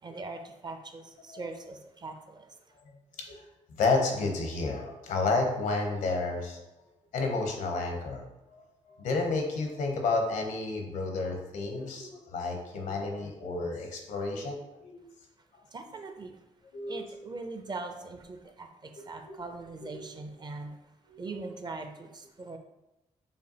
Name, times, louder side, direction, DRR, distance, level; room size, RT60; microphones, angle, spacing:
voice 1, 0.0-2.5 15.7-16.4 16.9-20.8 21.2-22.6, right 3 dB, 35° right, 6 dB, 0.5 m, -41 dB
voice 2, 3.8-6.7 7.1-8.2 8.5-15.0 16.7-17.1 19.0-19.3 21.1-21.5, left 3 dB, 80° left, 2 dB, 0.8 m, -31 dB
5.1 x 2.3 x 2.8 m, 0.95 s
cardioid pair, 65°, 13 cm